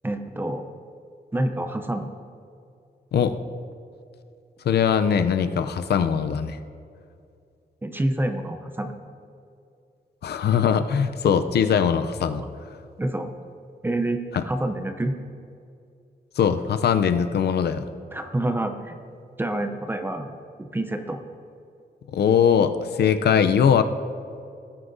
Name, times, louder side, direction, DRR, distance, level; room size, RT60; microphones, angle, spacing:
voice 1, 0.0-0.6 1.3-2.1 7.8-9.0 13.0-13.3 13.8-15.2 18.1-19.0 19.4-20.3 20.6-21.2, right 1 dB, 10° right, 6 dB, 0.6 m, -27 dB
voice 2, 4.6-6.6 10.2-12.4 16.4-17.9 22.1-23.8, left 7 dB, 80° left, 10 dB, 0.6 m, -21 dB
18.0 x 9.6 x 2.7 m, 2.4 s
wide cardioid pair, 175°, 17 cm